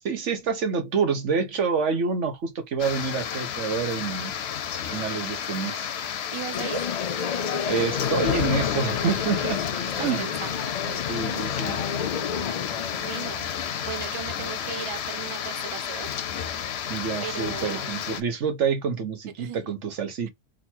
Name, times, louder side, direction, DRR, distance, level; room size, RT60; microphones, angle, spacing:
voice 1, 0.0-4.3 4.8-5.9 7.7-9.6 10.0-10.3 11.1-11.8 16.9-20.3, right 5 dB, 70° right, 1.3 m, -27 dB
sound 1, 2.8-18.2, left 8 dB, 60° left, 0.8 m, -31 dB
voice 2, 6.3-6.8 10.0-10.7 12.8-16.1 17.2-17.9 19.4-19.6, right 8 dB, 45° right, 0.4 m, -37 dB
sound 2, 6.5-13.3, left 7 dB, 80° left, 0.3 m, -32 dB
3.8 x 3.0 x 4.4 m
omnidirectional pair, 1.3 m